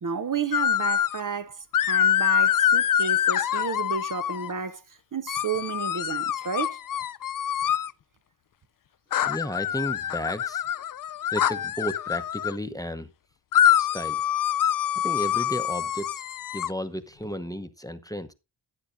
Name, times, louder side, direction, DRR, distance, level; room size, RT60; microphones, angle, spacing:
voice 1, 0.0-4.8 5.1-6.8, right 6 dB, 45° right, 0.7 m, -32 dB
sound 1, 0.5-1.2 1.7-4.5 5.3-7.9 9.1-12.5 13.5-16.7, left 10 dB, 50° left, 0.5 m, -25 dB
voice 2, 9.2-10.6 11.3-13.1 13.8-14.2 15.0-16.2 16.5-18.3, equal, 10° left, 0.9 m, -33 dB
15.0 x 8.5 x 2.6 m
wide cardioid pair, 75°, 44 cm